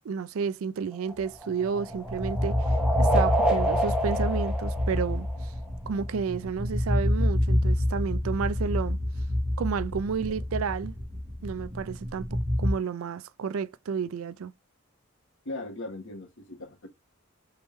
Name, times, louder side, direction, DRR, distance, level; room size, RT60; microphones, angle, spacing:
voice 1, 0.0-5.5 5.9-9.0 9.6-10.9 11.4-14.5, right 6 dB, 75° right, 0.4 m, -31 dB
sound 1, 0.9-5.7, right 1 dB, 5° right, 1.0 m, -29 dB
sound 2, 1.6-12.7, left 1 dB, 25° right, 1.3 m, -28 dB
voice 2, 15.4-16.9, left 2 dB, 65° left, 1.3 m, -38 dB
4.6 x 3.5 x 3.1 m
head